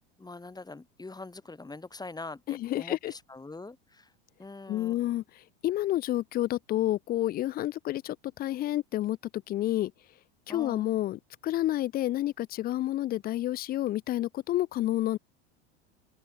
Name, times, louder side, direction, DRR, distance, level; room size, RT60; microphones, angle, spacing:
voice 1, 0.2-4.1 4.4-5.2 10.5-11.0, left 3 dB, 10° left, 4.5 m, -43 dB
voice 2, 2.5-3.1 4.7-5.2 5.6-9.2 9.5-9.9 10.5-15.2, left 14 dB, 30° left, 0.4 m, -29 dB
open air
hypercardioid pair, 90°, 33 cm